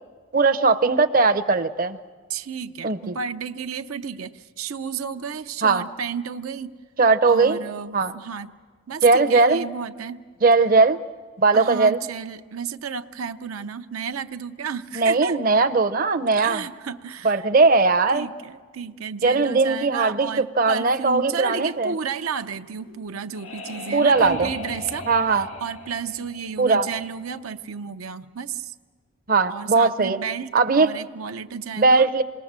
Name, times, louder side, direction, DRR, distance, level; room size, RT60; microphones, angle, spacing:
voice 1, 0.3-2.0 2.8-3.1 5.6-5.8 7.0-7.6 7.9-8.1 9.0-9.6 10.4-11.0 11.4-12.0 15.0-16.6 17.2-18.3 19.2-21.9 23.9-24.5 25.1-25.5 26.6-26.9 29.3-30.2 30.5-30.9 31.8-32.2, right 3 dB, 40° right, 8 dB, 0.6 m, -19 dB
voice 2, 2.3-6.8 7.3-8.5 8.9-10.2 11.5-15.4 16.4-17.5 18.1-25.1 25.3-28.7 29.5-32.1, right 6 dB, 90° right, 9 dB, 0.7 m, -32 dB
sound 1, 22.8-27.4, left 3 dB, 85° left, 2.0 m, -38 dB
27.0 x 20.0 x 7.4 m, 1.5 s
head